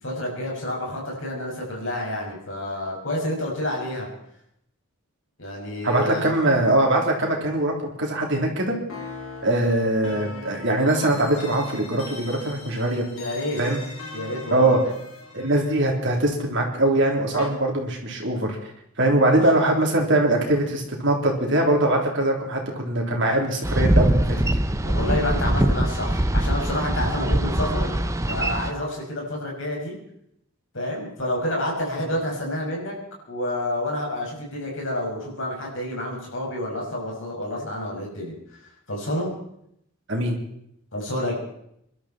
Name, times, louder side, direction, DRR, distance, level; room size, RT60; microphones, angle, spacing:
voice 1, 0.0-4.1 5.4-6.3 13.1-13.6 14.1-14.8 19.2-19.4 24.8-28.0 28.3-30.0 30.7-32.9 33.3-38.3 38.9-39.3 40.9-41.4, left 1 dB, 60° left, -1 dB, 6.0 m, -29 dB
voice 2, 5.8-8.8 9.4-13.0 13.6-13.8 14.5-14.8 15.3-18.6 19.0-24.2 40.1-40.4, right 1 dB, 55° right, 0 dB, 3.5 m, -22 dB
sound 1, 8.9-17.5, left 2 dB, 75° left, 3.0 m, -40 dB
Boat Water vehicle, 23.6-28.7, right 1 dB, 15° right, 0.7 m, -22 dB
25.0 x 12.5 x 4.4 m, 0.74 s
head